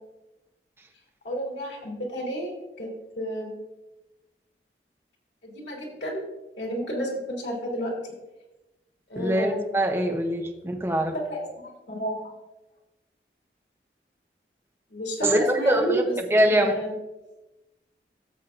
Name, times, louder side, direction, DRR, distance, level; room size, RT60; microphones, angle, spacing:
voice 1, 1.2-2.9 3.2-3.6 5.4-6.2 6.6-8.1 9.1-9.6 11.1-11.4 11.9-12.3 14.9-16.2 16.5-16.9, equal, 90° left, -2 dB, 3.1 m, -31 dB
voice 2, 9.2-11.1 15.2-16.0 16.3-16.8, right 1 dB, 15° right, 2 dB, 0.8 m, -23 dB
14.0 x 7.3 x 2.5 m, 1.0 s
head